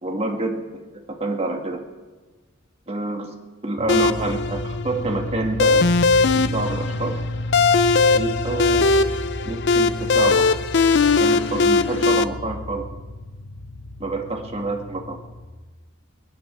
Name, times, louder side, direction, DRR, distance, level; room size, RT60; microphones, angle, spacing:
voice 1, 0.0-0.8 1.2-1.8 2.9-3.3 3.6-5.9 6.2-7.2 8.1-8.9 9.4-10.5 11.2-12.9 14.0-15.2, right 2 dB, 30° right, 3 dB, 1.6 m, -27 dB
sound 1, 3.8-15.4, left 1 dB, 35° left, 6.1 m, -32 dB
sound 2, 3.9-12.2, left 4 dB, 55° left, 0.6 m, -19 dB
20.0 x 11.0 x 6.1 m, 1.3 s
head